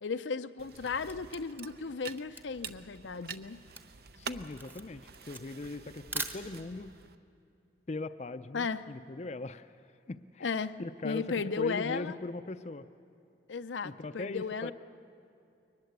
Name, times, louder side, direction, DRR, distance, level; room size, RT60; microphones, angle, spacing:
voice 1, 0.0-3.6 8.5-8.8 10.4-10.8 11.0-12.2 13.5-14.7, left 5 dB, 85° left, 11 dB, 0.6 m, -35 dB
sound 1, 0.6-7.1, right 6 dB, 55° right, 0.7 m, -47 dB
Camera, 1.1-6.9, right 2 dB, 10° right, 1.0 m, -43 dB
voice 2, 4.2-6.9 7.9-9.8 10.1-10.5 10.8-12.9 13.8-14.7, left 2 dB, 40° left, 11 dB, 0.5 m, -40 dB
22.0 x 20.0 x 8.1 m, 2.6 s
head